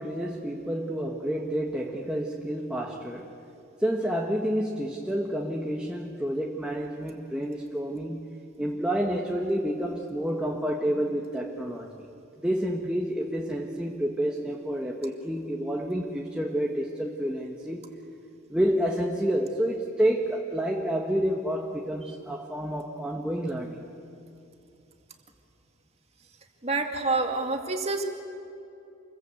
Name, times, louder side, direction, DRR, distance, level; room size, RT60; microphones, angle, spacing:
voice 1, 0.0-3.3 3.8-12.1 12.4-17.9 18.5-23.9, equal, 5° right, -1 dB, 1.3 m, -29 dB
voice 2, 26.6-28.0, right 3 dB, 30° right, 3 dB, 2.3 m, -27 dB
28.0 x 22.0 x 8.1 m, 2.8 s
head